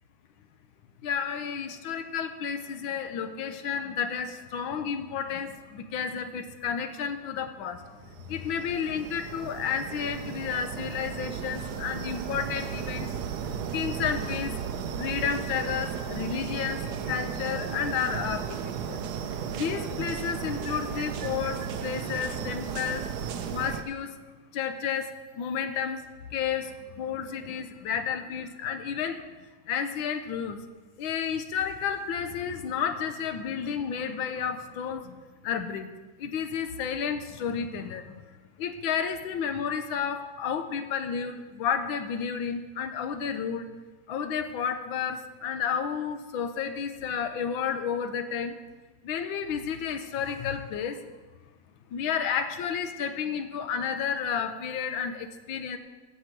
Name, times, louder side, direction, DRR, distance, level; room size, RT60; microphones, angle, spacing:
voice 1, 1.0-13.1 13.7-14.5 14.9-19.0 19.5-23.1 23.5-24.1 24.5-26.0 26.3-30.6 31.0-35.2 35.4-35.9 36.2-38.2 38.6-43.7 44.1-48.6 49.0-51.1 51.9-55.8, left 7 dB, 80° left, 9 dB, 1.6 m, -31 dB
sound 1, 7.9-23.8, right 7 dB, 65° right, 1.2 m, -35 dB
16.0 x 7.1 x 4.5 m, 1.3 s
omnidirectional pair, 2.2 m